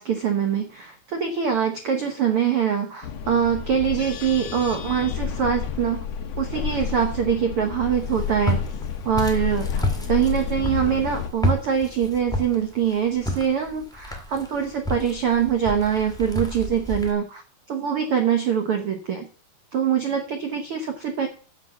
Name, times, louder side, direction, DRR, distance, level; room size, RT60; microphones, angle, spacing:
voice 1, 0.0-6.0 6.4-8.6 9.0-17.4 17.7-19.3 19.7-21.3, right 8 dB, 80° right, 5 dB, 1.2 m, -24 dB
sound 1, 3.0-11.3, left 7 dB, 65° left, 1.6 m, -30 dB
Walk footsteps, 7.9-17.1, equal, ahead, 1.1 m, -30 dB
9.7 x 7.2 x 7.0 m, 0.39 s
omnidirectional pair, 4.3 m